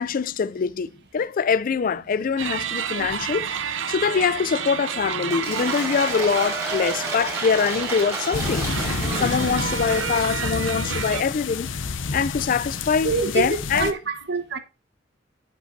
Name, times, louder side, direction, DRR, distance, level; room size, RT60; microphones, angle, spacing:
voice 1, 0.0-3.4 3.9-11.7 12.1-13.9, left 6 dB, 45° left, 0.4 m, -24 dB
sound 1, 2.4-11.2, right 7 dB, 85° right, 0.7 m, -30 dB
Cheering / Applause / Crowd, 5.3-10.5, right 2 dB, 15° right, 4.3 m, -32 dB
sound 2, 8.3-13.9, left 4 dB, 85° left, 0.8 m, -29 dB
voice 2, 13.0-14.6, right 4 dB, 60° right, 1.4 m, -26 dB
9.5 x 8.3 x 2.7 m
head